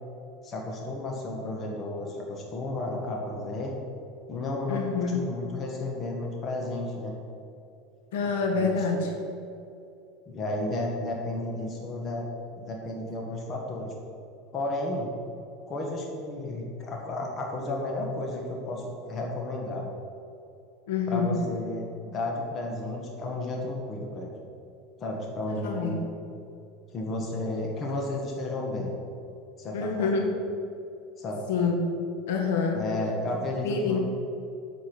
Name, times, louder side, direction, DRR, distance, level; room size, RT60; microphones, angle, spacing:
voice 1, 0.4-3.7 4.3-7.2 8.5-8.8 10.3-12.3 12.6-13.9 14.5-15.1 15.7-19.9 21.1-24.3 25.0-26.1 26.9-28.9 29.6-30.2 31.2-31.4 32.7-34.0, left 2 dB, 30° left, -1 dB, 1.6 m, -32 dB
voice 2, 4.7-5.2 8.1-9.1 20.9-21.4 25.5-26.0 29.7-30.3 31.5-31.9 32.3-32.8 33.6-34.0, left 4 dB, 85° left, 2 dB, 1.6 m, -27 dB
8.4 x 6.9 x 6.2 m, 2.6 s
supercardioid pair, 140°, 0 cm